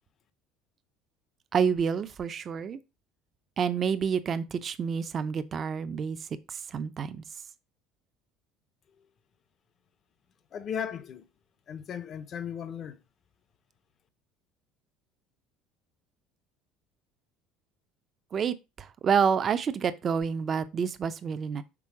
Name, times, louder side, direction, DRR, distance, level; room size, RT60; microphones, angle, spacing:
voice 1, 1.5-2.8 3.6-7.2 18.3-21.6, right 6 dB, 35° right, 0.6 m, -28 dB
voice 2, 10.5-11.3 11.7-13.0, left 8 dB, 40° left, 0.7 m, -36 dB
6.2 x 3.5 x 4.7 m
cardioid pair, 120°, 0 cm